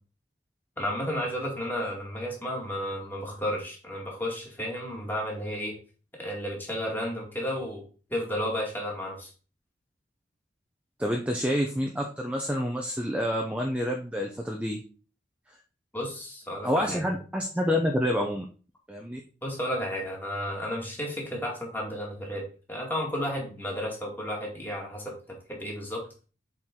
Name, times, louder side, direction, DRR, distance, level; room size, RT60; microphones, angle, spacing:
voice 1, 0.8-5.8 6.2-7.8 8.1-9.3 15.9-17.0 19.4-25.1 25.5-26.0, equal, 10° left, -2 dB, 2.1 m, -32 dB
voice 2, 11.0-14.8 16.6-18.4 18.9-19.2, equal, 5° right, 1 dB, 0.7 m, -28 dB
7.5 x 4.6 x 3.7 m, 0.37 s
head